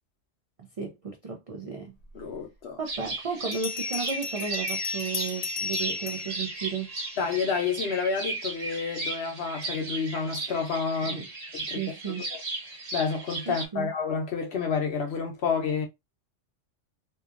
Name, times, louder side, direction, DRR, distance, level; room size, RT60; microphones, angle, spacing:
voice 1, 0.8-1.9 2.8-6.9 11.1-11.2 11.7-12.2 13.5-13.9, right 6 dB, 65° right, 0.3 m, -34 dB
voice 2, 2.1-2.8 7.2-11.2 11.5-11.8 12.3-12.4 12.9-15.9, left 5 dB, 60° left, 0.9 m, -29 dB
Bell, 2.3-2.4 3.5-7.4, left 4 dB, 75° left, 0.3 m, -34 dB
sound 1, 2.9-13.7, right 2 dB, 40° right, 0.7 m, -36 dB
2.7 x 2.4 x 2.4 m
omnidirectional pair, 1.3 m